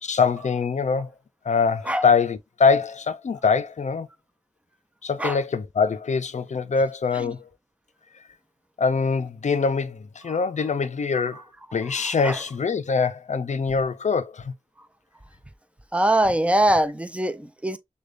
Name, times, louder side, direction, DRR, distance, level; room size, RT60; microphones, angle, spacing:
voice 1, 0.0-1.1 1.5-4.1 5.0-7.4 8.8-11.4 11.7-14.5, left 5 dB, 65° left, 0.5 m, -23 dB
voice 2, 11.8-12.4 15.9-17.8, right 1 dB, 10° right, 0.5 m, -23 dB
6.4 x 2.2 x 2.5 m
wide cardioid pair, 75°, 13 cm